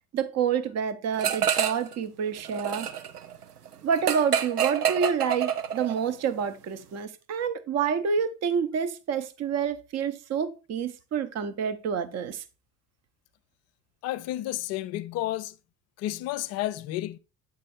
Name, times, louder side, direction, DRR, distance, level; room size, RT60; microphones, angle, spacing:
voice 1, 0.1-2.9 3.8-12.4, right 7 dB, 35° right, 0.8 m, -28 dB
sound 1, 1.2-1.9 2.2-6.1, right 8 dB, 85° right, 0.6 m, -27 dB
voice 2, 14.0-15.5 16.0-17.2, left 15 dB, 35° left, 0.4 m, -31 dB
8.3 x 3.8 x 4.2 m
figure-of-eight pair, 60°, 45 cm